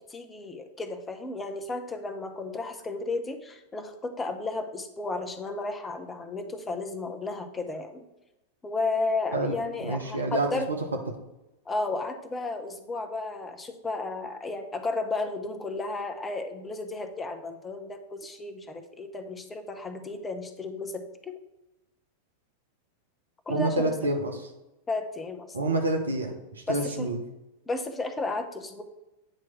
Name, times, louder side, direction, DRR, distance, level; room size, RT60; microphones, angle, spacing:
voice 1, 0.1-8.1 8.6-10.7 11.7-21.3 23.5-24.1 24.9-25.5 26.7-27.1 27.7-28.8, left 3 dB, 15° left, 6 dB, 0.8 m, -33 dB
voice 2, 9.8-10.5 23.5-24.4 25.5-27.2, right 2 dB, 75° right, 2 dB, 0.9 m, -27 dB
8.9 x 3.1 x 5.8 m, 0.97 s
figure-of-eight pair, 90°, 0 cm